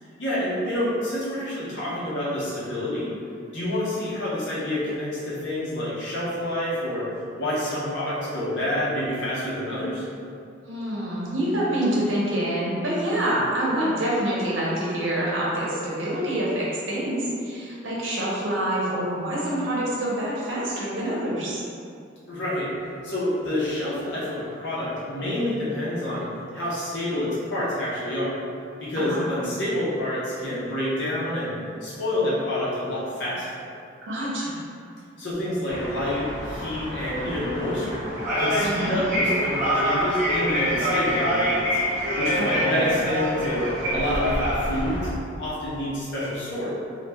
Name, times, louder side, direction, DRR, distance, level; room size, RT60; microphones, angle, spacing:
voice 1, 0.2-3.1 3.5-7.1 7.4-10.0 22.3-22.7 23.0-28.4 28.8-33.5 35.2-38.1 38.4-41.8 42.2-45.0 45.4-46.8, left 1 dB, 65° left, -8 dB, 0.8 m, -28 dB
voice 2, 10.6-21.6 29.0-29.3 34.0-34.7 38.6-39.0 42.4-42.8, right 1 dB, 80° right, -6 dB, 0.7 m, -26 dB
sound 1, 35.7-45.1, equal, 45° right, 1.0 m, -26 dB
3.0 x 2.3 x 2.2 m, 2.4 s
head